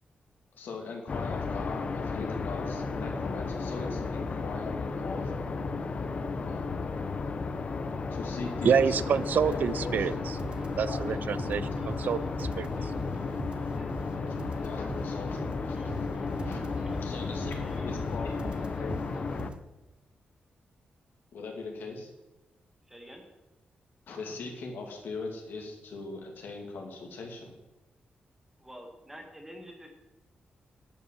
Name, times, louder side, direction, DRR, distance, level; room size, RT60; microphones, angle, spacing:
voice 1, 0.6-5.3 6.5-7.0 8.1-10.2 10.8-11.7 14.6-16.0 16.4-16.6 17.0-19.1 21.3-22.1 24.1-27.5, left 3 dB, 85° left, 2.4 m, -40 dB
sound 1, 1.1-19.5, left 4 dB, 40° left, 0.6 m, -33 dB
voice 2, 8.6-10.4 10.8-12.9, right 7 dB, 60° right, 0.4 m, -28 dB
sound 2, 9.1-19.6, right 3 dB, 30° right, 0.8 m, -43 dB
voice 3, 17.5-18.0 22.9-23.3 28.6-29.9, equal, 10° right, 1.8 m, -47 dB
11.5 x 5.4 x 7.5 m
wide cardioid pair, 175°, 3 cm